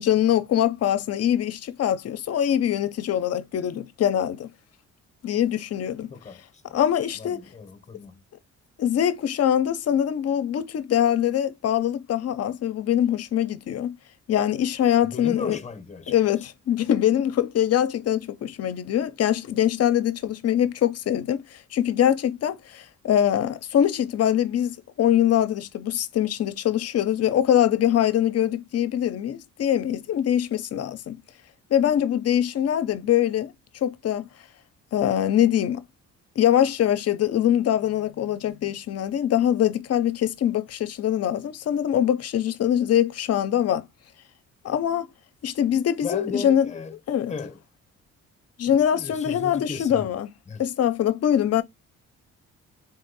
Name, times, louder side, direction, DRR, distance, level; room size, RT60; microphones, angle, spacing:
voice 1, 0.0-4.5 5.2-6.1 6.7-7.5 8.8-14.0 14.3-15.6 16.1-31.2 31.7-33.5 33.8-34.3 34.9-35.8 36.4-43.8 44.6-45.1 45.4-46.7 47.1-47.3 48.6-50.3 50.6-51.6, left 10 dB, 55° left, 0.6 m, -23 dB
voice 2, 6.1-6.6 7.1-8.2 15.0-16.1 46.0-47.0 47.3-47.6 48.7-50.1 50.5-50.6, left 5 dB, 25° left, 0.8 m, -36 dB
4.0 x 2.6 x 3.9 m
cardioid pair, 90°, 30 cm